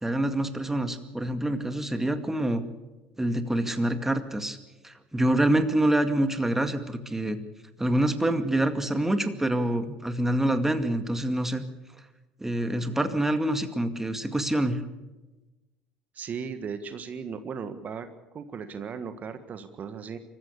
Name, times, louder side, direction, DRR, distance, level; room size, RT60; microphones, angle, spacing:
voice 1, 0.0-2.6 3.2-4.6 4.8-7.4 7.8-11.7 12.4-14.8, right 1 dB, 10° right, 9 dB, 2.1 m, -26 dB
voice 2, 16.1-18.1 18.3-20.2, right 6 dB, 40° right, 9 dB, 1.6 m, -36 dB
24.5 x 14.5 x 8.3 m, 1.1 s
hypercardioid pair, 75°, 4 cm